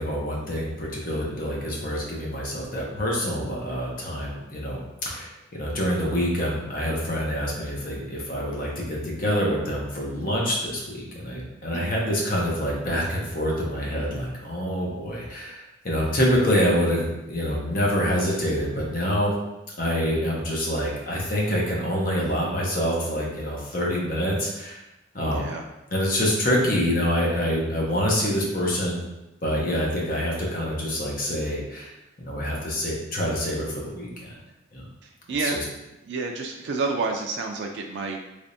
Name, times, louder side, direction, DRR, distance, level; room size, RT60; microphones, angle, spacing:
voice 1, 0.0-19.3 19.8-24.8 25.1-25.5 25.9-29.0 29.4-34.4 34.7-34.9 35.4-35.6, equal, 45° left, -3 dB, 0.8 m, -26 dB
voice 2, 25.3-25.7 35.0-35.6 36.0-38.2, right 4 dB, 60° right, 2 dB, 0.3 m, -29 dB
3.4 x 3.3 x 2.6 m, 0.94 s
head